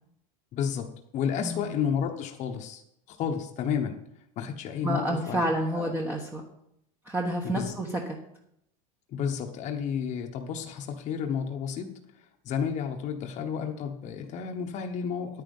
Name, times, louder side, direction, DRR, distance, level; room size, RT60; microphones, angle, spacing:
voice 1, 0.5-0.9 1.1-2.8 3.1-4.0 4.4-5.4 5.7-5.9 7.4-7.7 9.1-15.4, left 7 dB, 40° left, 3 dB, 1.1 m, -31 dB
voice 2, 4.8-6.4 7.0-8.2, right 1 dB, 10° right, 1 dB, 1.1 m, -29 dB
10.0 x 9.3 x 5.4 m, 0.78 s
supercardioid pair, 140°, 18 cm